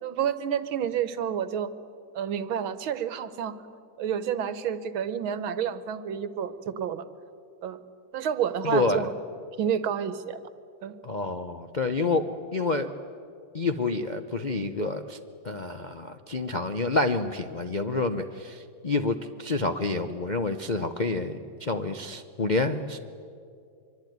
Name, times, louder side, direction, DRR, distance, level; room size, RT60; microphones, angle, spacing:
voice 1, 0.0-1.7 2.1-3.6 4.0-7.0 7.6-7.8 8.1-9.1 9.6-10.4 10.8-11.0, right 8 dB, 85° right, 13 dB, 1.9 m, -29 dB
voice 2, 8.6-9.1 11.0-12.9 13.5-15.2 15.4-23.0, left 3 dB, 50° left, 5 dB, 0.5 m, -28 dB
25.5 x 24.0 x 9.4 m, 2.5 s
omnidirectional pair, 2.2 m